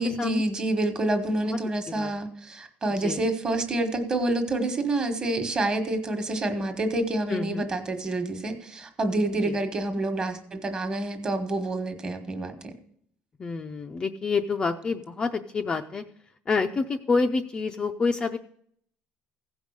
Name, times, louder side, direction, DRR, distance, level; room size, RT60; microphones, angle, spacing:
voice 1, 0.0-12.7, right 2 dB, 25° right, 6 dB, 1.4 m, -28 dB
voice 2, 7.3-7.7 9.4-9.6 13.4-16.0 16.5-18.4, left 4 dB, 20° left, 5 dB, 0.5 m, -27 dB
16.0 x 5.4 x 6.4 m, 0.64 s
cardioid pair, 155°, 4 cm